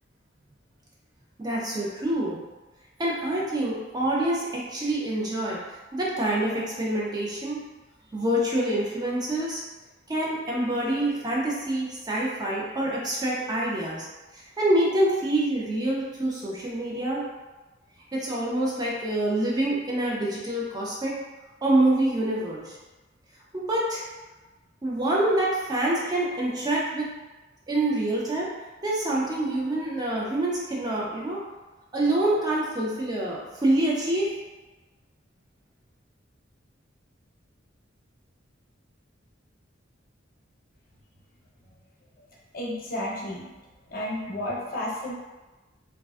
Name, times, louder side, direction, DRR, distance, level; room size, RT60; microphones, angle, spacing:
voice 1, 1.4-2.4 3.0-5.6 5.9-7.6 8.1-9.6 10.1-14.1 14.3-17.2 18.1-21.2 21.6-22.8 23.5-24.0 24.8-27.1 27.7-28.5 28.8-31.4 31.9-34.3, right 1 dB, 20° right, -4 dB, 0.4 m, -26 dB
voice 2, 42.5-43.5 43.9-45.1, left 1 dB, 50° left, -4 dB, 0.5 m, -32 dB
2.4 x 2.2 x 2.3 m, 1.2 s
head